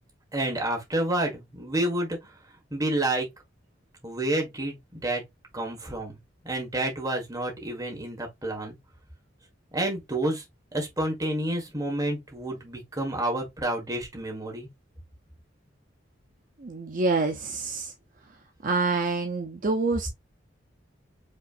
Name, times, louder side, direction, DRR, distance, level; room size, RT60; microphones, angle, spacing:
voice 1, 0.3-2.3 2.7-3.3 4.0-5.2 5.5-6.2 6.4-8.7 9.7-10.4 10.7-14.7, right 1 dB, 20° right, 1.4 m, -29 dB
voice 2, 16.6-17.9 18.6-20.1, right 3 dB, 45° right, 0.5 m, -26 dB
5.2 x 3.1 x 2.4 m
head